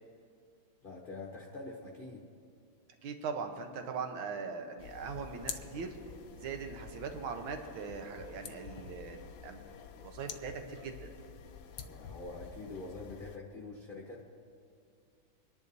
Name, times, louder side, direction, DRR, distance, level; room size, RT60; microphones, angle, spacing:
voice 1, 0.8-2.2 11.8-14.3, left 3 dB, 35° left, -2 dB, 0.9 m, -45 dB
voice 2, 3.0-6.0 6.4-9.6 9.9-11.1, right 5 dB, 80° right, 5 dB, 1.7 m, -40 dB
sound 1, 4.8-13.4, left 7 dB, 75° left, 0.9 m, -48 dB
25.5 x 10.5 x 2.7 m, 2.4 s
omnidirectional pair, 2.2 m